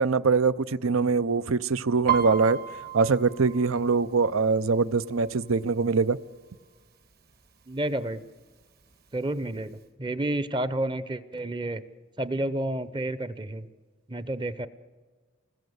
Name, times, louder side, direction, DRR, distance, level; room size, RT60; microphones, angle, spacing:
voice 1, 0.0-2.6 2.9-6.2, right 4 dB, 85° right, 16 dB, 0.7 m, -23 dB
Piano, 2.1-5.7 6.1-6.5 6.8-7.5 8.1-8.2 8.4-9.4 9.8-9.9, right 9 dB, 50° right, 1.5 m, -33 dB
voice 2, 7.7-8.2 9.1-11.8 12.2-13.6 14.1-14.7, right 1 dB, 20° right, 14 dB, 0.7 m, -30 dB
28.5 x 20.0 x 8.0 m, 1.4 s
head